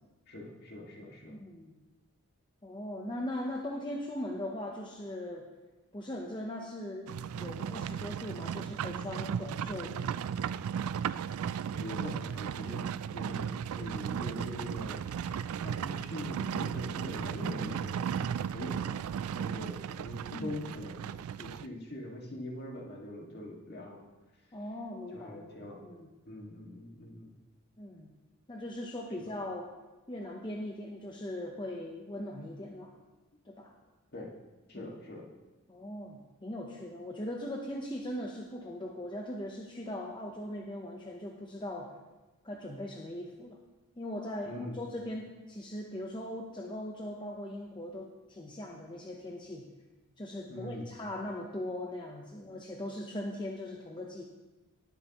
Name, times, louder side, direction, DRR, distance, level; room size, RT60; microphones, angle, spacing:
voice 1, 0.3-1.4 11.7-12.9 13.1-15.4 15.6-19.0 19.3-24.0 25.1-25.8 26.3-27.3 29.2-29.3 34.1-34.3 34.7-35.3 44.5-44.8 50.5-50.9, left 1 dB, 50° left, -1 dB, 2.0 m, -43 dB
voice 2, 1.0-1.7 2.6-5.5 5.9-10.1 20.3-20.6 24.5-25.5 25.8-26.1 27.8-28.1 28.5-29.7 30.1-32.9 33.4-33.7 34.7-34.9 35.7-41.9 42.4-43.6 44.0-49.6 50.2-54.2, left 1 dB, 20° left, 0 dB, 0.8 m, -40 dB
Livestock farm animals working animals, 7.1-21.7, right 8 dB, 75° right, 0.3 m, -35 dB
19.0 x 7.7 x 3.0 m, 1.1 s
head